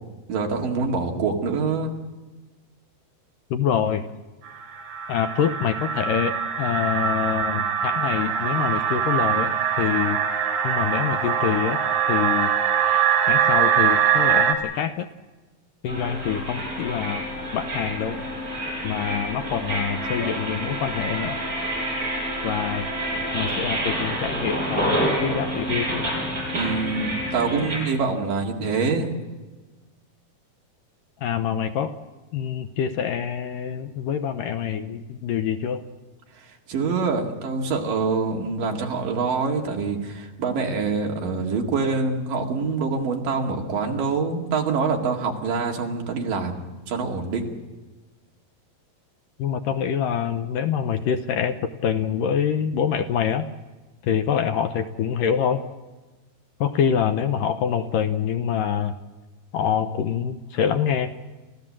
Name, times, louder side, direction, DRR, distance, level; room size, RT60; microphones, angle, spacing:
voice 1, 0.3-2.0 26.5-29.1 36.7-47.6, right 4 dB, 60° right, 2 dB, 3.6 m, -25 dB
voice 2, 3.5-4.1 5.1-10.2 10.6-11.8 12.1-12.5 12.8-15.1 15.8-17.2 17.5-18.2 18.8-21.4 22.4-22.9 23.3-26.1 31.2-31.9 32.3-35.8 49.4-53.5 54.0-55.6 56.6-59.0 59.5-61.1, left 8 dB, 75° left, 8 dB, 2.2 m, -25 dB
sound 1, 4.5-14.5, right 8 dB, 85° right, 4.9 m, -23 dB
sound 2, 15.9-27.8, right 1 dB, 20° right, 8.3 m, -28 dB
29.0 x 15.0 x 7.5 m, 1.2 s
omnidirectional pair, 4.5 m